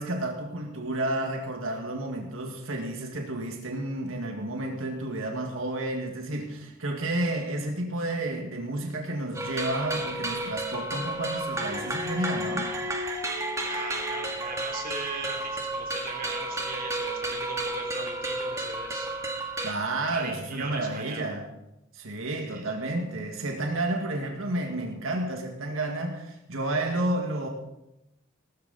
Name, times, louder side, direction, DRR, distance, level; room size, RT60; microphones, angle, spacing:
voice 1, 0.0-12.8 19.6-21.5 21.9-27.5, right 1 dB, 85° right, 2 dB, 1.9 m, -31 dB
sound 1, 9.3-19.7, right 1 dB, 15° right, 1.6 m, -32 dB
voice 2, 13.6-19.1 20.1-21.4 22.5-22.8, right 3 dB, 45° right, 2 dB, 3.2 m, -39 dB
17.5 x 13.0 x 4.1 m, 0.89 s
head